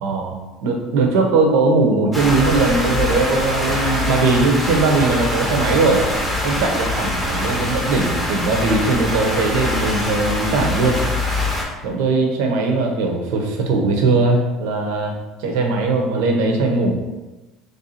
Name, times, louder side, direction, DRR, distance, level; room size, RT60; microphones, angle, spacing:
voice 1, 0.0-6.1 6.4-11.0 11.8-16.9, right 3 dB, 85° right, 2 dB, 0.7 m, -19 dB
sound 1, 2.1-11.6, left 1 dB, 10° left, 0.7 m, -23 dB
3.4 x 2.6 x 4.1 m, 1.1 s
cardioid pair, 160°, 0 cm